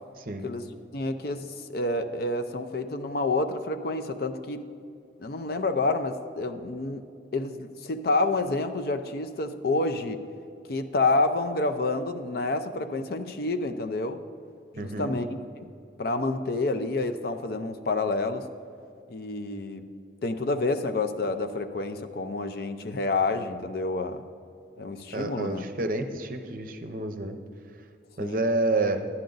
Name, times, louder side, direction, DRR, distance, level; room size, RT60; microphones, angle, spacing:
voice 1, 0.4-4.6 5.2-7.0 7.3-10.2 10.7-14.2 14.7-15.7 16.0-18.4 19.1-19.8 20.2-24.2 24.8-25.7 28.2-28.4, left 2 dB, 55° left, 7 dB, 0.5 m, -28 dB
voice 2, 14.8-15.2 25.1-27.3 28.2-29.0, right 2 dB, 45° right, 6 dB, 0.7 m, -29 dB
11.0 x 10.5 x 3.9 m, 2.5 s
head